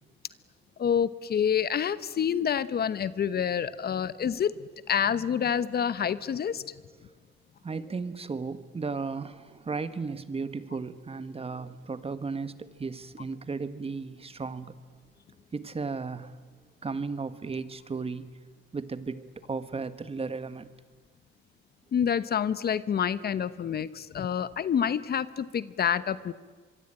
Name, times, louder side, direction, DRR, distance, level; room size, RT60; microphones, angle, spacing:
voice 1, 0.8-4.5 4.9-6.6 21.9-26.3, left 8 dB, 50° left, 16 dB, 1.1 m, -27 dB
voice 2, 7.6-14.7 15.5-16.4 16.8-18.4 18.7-20.7, right 4 dB, 30° right, 13 dB, 1.6 m, -35 dB
25.5 x 23.0 x 9.0 m, 1.4 s
cardioid pair, 90°, 20 cm